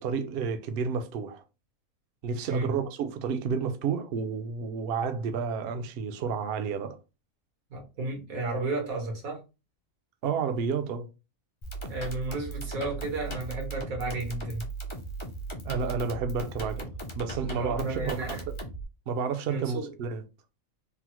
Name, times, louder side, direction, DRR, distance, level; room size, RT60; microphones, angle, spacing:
voice 1, 0.0-1.4 2.2-7.0 10.2-11.1 15.6-16.9 17.1-18.4 19.1-20.2, right 5 dB, 65° right, 0.6 m, -31 dB
voice 2, 7.7-9.4 11.9-14.6 17.6-18.4 19.5-19.9, right 2 dB, 85° right, 1.5 m, -33 dB
sound 1, 11.6-18.8, right 3 dB, 45° left, 0.3 m, -37 dB
3.5 x 2.0 x 2.9 m
omnidirectional pair, 1.4 m